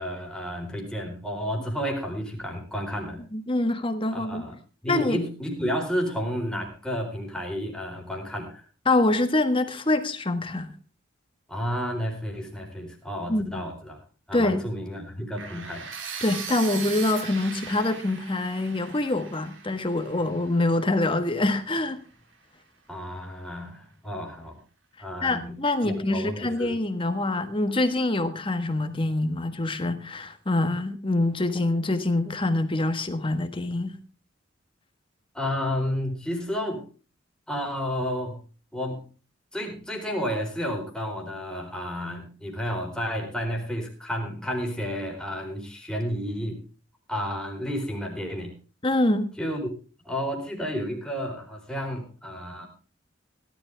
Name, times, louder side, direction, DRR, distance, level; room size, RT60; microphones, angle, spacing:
voice 1, 0.0-3.2 4.1-4.6 4.8-8.6 11.5-14.0 14.3-15.9 22.9-24.6 25.0-26.8 35.3-36.8 37.5-38.4 38.7-39.0 39.5-46.6 47.1-48.5 49.4-49.7 50.0-52.7, equal, 5° left, 4.3 m, -31 dB
voice 2, 3.3-4.4 4.9-5.2 8.8-10.7 13.3-13.4 14.3-14.6 16.2-22.0 25.2-34.0 48.8-49.3, left 2 dB, 30° left, 1.4 m, -25 dB
sound 1, 15.4-21.3, right 6 dB, 80° right, 3.0 m, -39 dB
17.5 x 12.0 x 3.5 m
head